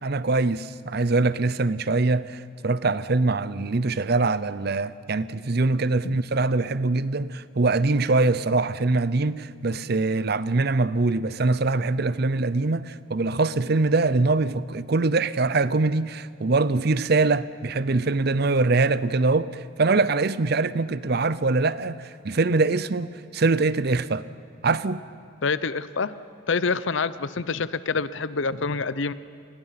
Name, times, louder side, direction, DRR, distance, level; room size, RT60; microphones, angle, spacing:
voice 1, 0.0-24.2 24.6-25.0, right 3 dB, 50° right, 0.6 m, -23 dB
voice 2, 25.4-26.1 26.5-29.1, left 4 dB, 65° left, 0.7 m, -26 dB
30.0 x 20.5 x 5.8 m
head